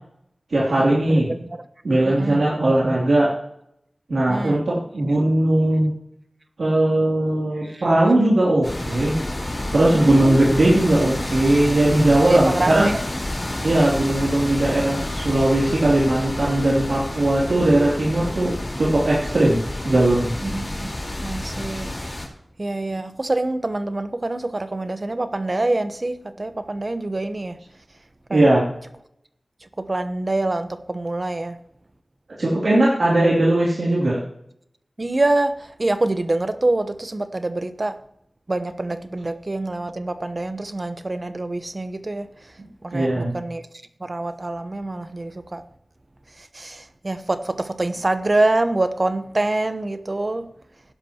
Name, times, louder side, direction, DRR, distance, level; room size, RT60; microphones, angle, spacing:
voice 1, 0.5-1.3 1.8-3.3 4.1-5.9 6.6-9.2 9.7-12.9 13.6-18.5 18.8-19.6 19.8-20.3 28.3-28.6 32.4-34.2 42.9-43.3, right 1 dB, 90° right, 2.8 m, -19 dB
voice 2, 1.1-1.5 2.1-2.5 4.3-4.7 7.6-7.8 9.9-10.4 12.3-13.0 20.4-21.0 21.2-22.0 22.6-27.6 28.3-28.5 29.8-31.6 35.0-38.0 38.5-42.5 42.8-43.7 44.0-45.6 46.4-50.5, right 2 dB, 45° right, 1.0 m, -25 dB
sound 1, 8.6-22.3, left 1 dB, 40° left, 4.1 m, -29 dB
16.5 x 11.0 x 3.0 m
wide cardioid pair, 45°, 0 cm